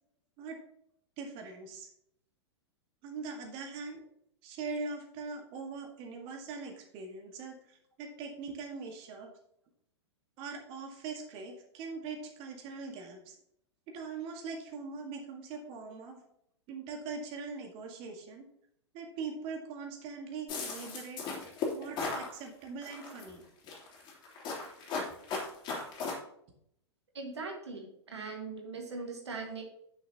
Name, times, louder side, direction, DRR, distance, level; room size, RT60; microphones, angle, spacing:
voice 1, 1.2-1.9 3.0-4.0 4.4-9.3 10.4-13.3 13.9-16.2 16.7-18.5 18.9-21.2 21.7-23.5, right 4 dB, 40° right, 2 dB, 1.8 m, -42 dB
sound 1, 20.5-22.3 22.8-23.3 23.7-26.1, left 4 dB, 30° left, 3.1 m, -36 dB
voice 2, 27.1-29.6, right 4 dB, 75° right, 2 dB, 1.8 m, -40 dB
10.5 x 6.5 x 2.9 m, 0.71 s
figure-of-eight pair, 100°, 15 cm